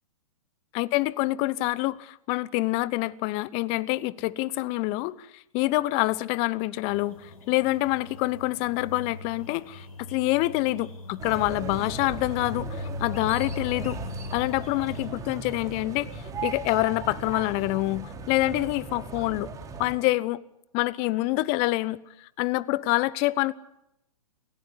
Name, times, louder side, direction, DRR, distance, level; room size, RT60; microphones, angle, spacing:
voice 1, 0.7-14.0 14.3-19.5 19.8-20.4 20.7-23.5, left 19 dB, 35° left, 1.0 m, -26 dB
sound 1, 6.9-15.1, left 2 dB, 75° left, 5.2 m, -39 dB
sound 2, 11.2-19.9, right 4 dB, 20° right, 4.5 m, -38 dB
29.5 x 15.0 x 10.0 m
hypercardioid pair, 120°, 18 cm